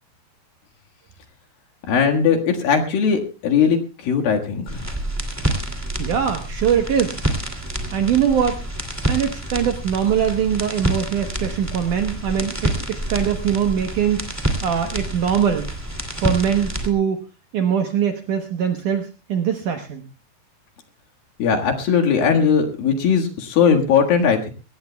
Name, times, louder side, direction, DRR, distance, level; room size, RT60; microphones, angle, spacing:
voice 1, 1.9-4.9 21.4-24.5, left 6 dB, 65° left, 3 dB, 3.2 m, -19 dB
sound 1, 4.7-16.9, right 1 dB, 25° right, 0.3 m, -27 dB
voice 2, 6.0-7.2 7.9-8.6 9.1-15.7 16.1-17.2 17.5-20.0, right 8 dB, 70° right, 5 dB, 2.0 m, -22 dB
22.5 x 18.0 x 2.2 m, 0.31 s
omnidirectional pair, 4.9 m